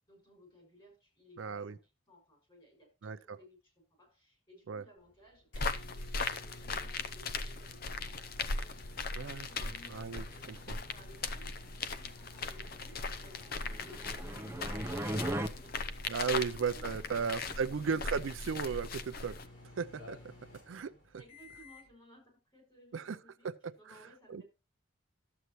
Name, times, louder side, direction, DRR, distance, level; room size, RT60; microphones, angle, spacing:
voice 1, 0.1-5.5 5.8-7.8 8.5-11.5 11.8-17.9 21.2-23.5 23.8-24.4, left 1 dB, 25° left, 6.0 m, -60 dB
voice 2, 1.4-1.8 3.0-3.4 4.7-4.8 9.2-9.5 9.9-10.8 16.1-19.4 19.8-20.3 20.7-20.9 22.9-23.2 23.4-23.9 24.3-24.4, right 6 dB, 80° right, 0.5 m, -36 dB
sound 1, 5.0-21.9, left 1 dB, 70° left, 4.9 m, -54 dB
sound 2, 5.5-19.5, left 4 dB, 50° left, 0.6 m, -39 dB
sound 3, 13.5-15.5, right 1 dB, 15° right, 0.6 m, -37 dB
12.5 x 8.0 x 3.0 m
head